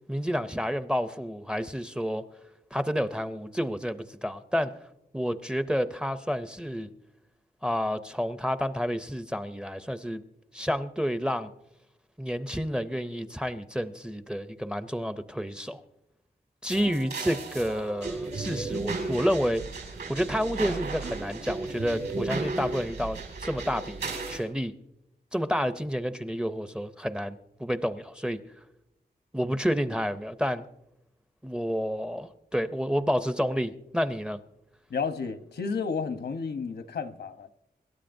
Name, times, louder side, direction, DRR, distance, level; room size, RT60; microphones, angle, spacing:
voice 1, 0.1-2.2 2.7-4.7 5.1-6.9 7.6-10.2 10.5-11.5 12.2-15.8 16.6-19.6 20.1-24.7 25.3-28.4 29.3-30.6 31.4-34.4, equal, 5° right, 0.4 m, -30 dB
sound 1, 16.7-24.4, right 3 dB, 75° right, 5.7 m, -34 dB
voice 2, 34.9-37.5, left 5 dB, 85° left, 0.8 m, -32 dB
26.5 x 12.5 x 2.6 m
wide cardioid pair, 180°, 17 cm